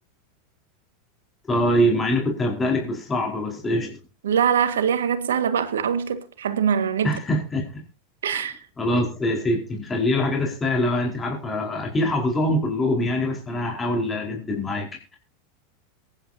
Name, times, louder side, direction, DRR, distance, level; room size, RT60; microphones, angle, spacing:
voice 1, 1.5-4.0 7.0-7.8 8.2-8.5 8.8-15.2, left 1 dB, 20° left, 4.7 m, -24 dB
voice 2, 4.2-7.2 8.2-8.6, right 8 dB, 75° right, 1.8 m, -23 dB
23.0 x 11.0 x 2.8 m
hypercardioid pair, 90°, 0 cm